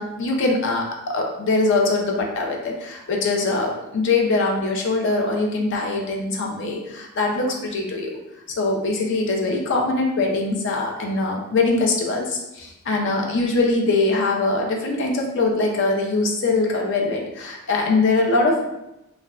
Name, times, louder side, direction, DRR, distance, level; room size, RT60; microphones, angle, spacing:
voice 1, 0.0-8.1 8.6-18.7, left 3 dB, 60° left, 0 dB, 0.5 m, -22 dB
2.2 x 2.1 x 3.6 m, 0.91 s
head